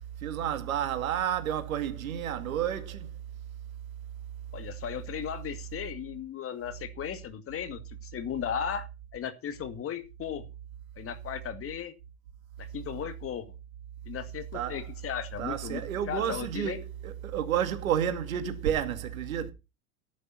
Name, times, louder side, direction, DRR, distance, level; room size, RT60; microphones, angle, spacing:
voice 1, 0.2-3.1 14.5-14.8 15.4-19.5, right 9 dB, 65° right, 2.4 m, -30 dB
voice 2, 4.5-10.5 11.0-12.0 12.6-13.5 14.1-16.8, left 8 dB, 30° left, 2.1 m, -36 dB
14.0 x 10.5 x 4.2 m
figure-of-eight pair, 85°, 44 cm